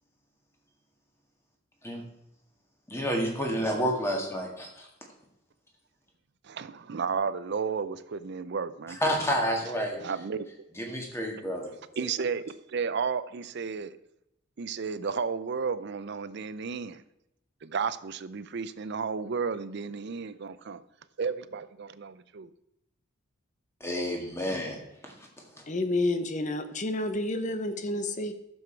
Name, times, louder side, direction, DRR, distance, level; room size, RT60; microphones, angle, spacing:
voice 1, 2.9-4.9 9.0-10.0 10.7-12.0 23.8-25.3 25.6-25.7, equal, 10° left, 1.9 m, -30 dB
voice 2, 6.4-9.0 10.0-10.4 12.0-13.9 14.6-17.0 17.6-20.8 21.2-22.5, right 5 dB, 55° right, 0.5 m, -33 dB
voice 3, 25.7-28.3, left 2 dB, 35° left, 0.8 m, -29 dB
11.5 x 7.2 x 4.5 m
head